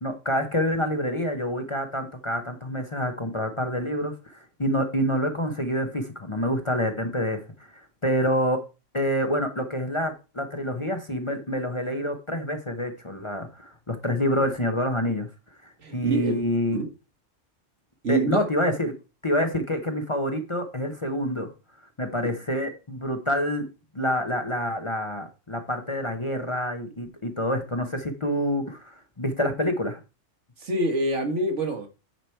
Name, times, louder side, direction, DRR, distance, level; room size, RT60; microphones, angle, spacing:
voice 1, 0.0-7.4 7.7-8.6 8.9-15.3 15.6-16.8 18.1-18.9 19.2-21.5 22.0-23.7 23.9-30.0, equal, 25° left, 0.9 m, -27 dB
voice 2, 15.8-16.4 16.7-16.9 18.0-18.4 22.2-22.4 30.6-31.9, right 2 dB, 70° right, 1.9 m, -26 dB
9.2 x 4.9 x 4.5 m
omnidirectional pair, 1.3 m